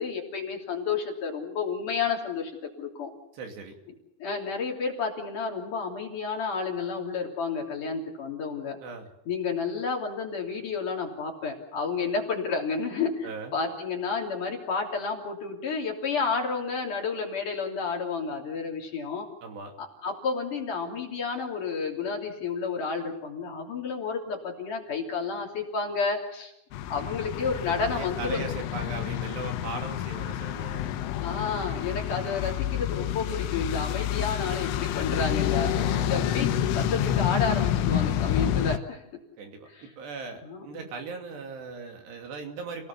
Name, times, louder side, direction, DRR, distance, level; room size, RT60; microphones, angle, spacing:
voice 1, 0.0-3.1 4.2-8.8 9.3-19.3 19.8-26.5 26.9-28.4 31.2-39.0 39.7-39.9 40.4-40.9, left 5 dB, 45° left, 0 dB, 4.2 m, -31 dB
voice 2, 3.3-3.8 8.8-9.1 13.2-13.6 19.4-19.7 27.8-30.9 35.7-36.1 39.4-42.9, right 4 dB, 65° right, 4 dB, 4.6 m, -39 dB
sound 1, 26.7-38.8, left 11 dB, 90° left, 3.6 m, -28 dB
29.5 x 18.0 x 7.1 m, 0.84 s
omnidirectional pair, 5.4 m